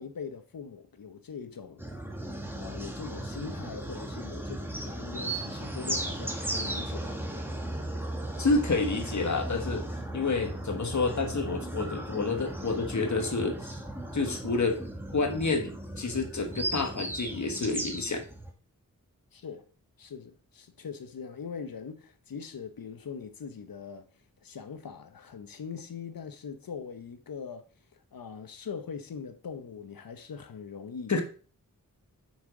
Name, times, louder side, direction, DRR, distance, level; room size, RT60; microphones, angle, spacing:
voice 1, 0.0-1.9 2.5-7.2 19.3-19.6 20.0-24.1 24.4-27.7 28.1-31.1, left 6 dB, 85° left, 1.0 m, -41 dB
sound 1, 1.8-18.5, right 1 dB, 5° right, 1.6 m, -36 dB
voice 2, 8.4-9.9 10.1-13.8 14.1-14.8 15.1-18.2 31.1-31.2, left 3 dB, 55° left, 1.4 m, -29 dB
6.3 x 5.8 x 4.9 m
wide cardioid pair, 80°, 34 cm